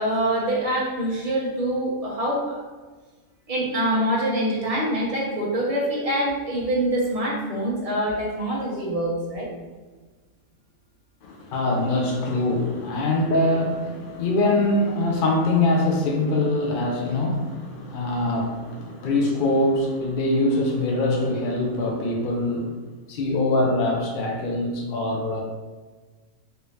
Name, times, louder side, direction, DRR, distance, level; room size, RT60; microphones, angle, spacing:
voice 1, 0.0-2.6 3.5-9.5, right 1 dB, 35° right, -4 dB, 0.6 m, -25 dB
voice 2, 11.2-25.4, left 2 dB, 65° left, 0 dB, 0.5 m, -23 dB
3.3 x 2.6 x 3.2 m, 1.3 s
omnidirectional pair, 1.5 m